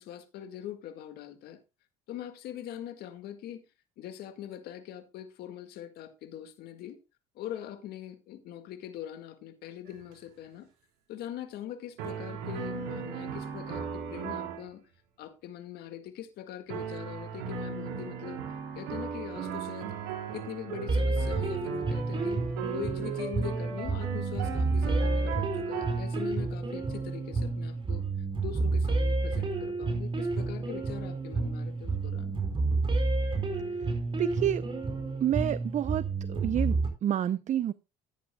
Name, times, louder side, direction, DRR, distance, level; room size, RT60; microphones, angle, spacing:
voice 1, 0.0-1.6 2.1-3.7 4.0-7.0 7.4-10.7 11.1-14.8 15.2-18.4 18.8-20.0 20.3-22.4 22.7-28.1 28.4-32.4, left 10 dB, 70° left, 1.9 m, -42 dB
sound 1, 9.9-10.1 12.0-14.7 16.7-26.2, right 7 dB, 80° right, 4.1 m, -37 dB
sound 2, 20.9-36.9, right 3 dB, 30° right, 4.4 m, -30 dB
voice 2, 34.2-34.6 35.2-37.7, right 10 dB, 45° right, 0.6 m, -29 dB
14.5 x 10.5 x 2.3 m
supercardioid pair, 75°, 17 cm